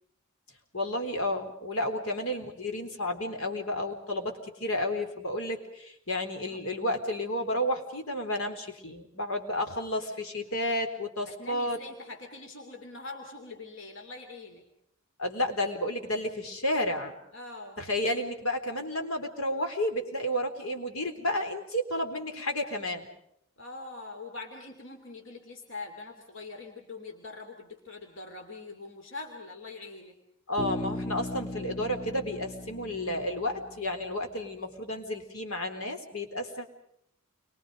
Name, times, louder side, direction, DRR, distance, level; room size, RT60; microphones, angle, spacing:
voice 1, 0.7-11.8 15.2-17.2 17.8-23.1 30.5-36.7, left 1 dB, 80° left, 5 dB, 4.0 m, -31 dB
voice 2, 11.2-14.6 17.3-17.8 23.6-30.1, left 3 dB, 60° left, 3 dB, 3.1 m, -43 dB
Bass guitar, 30.6-34.3, left 2 dB, 40° left, 3.3 m, -38 dB
29.5 x 24.0 x 5.3 m, 0.75 s
head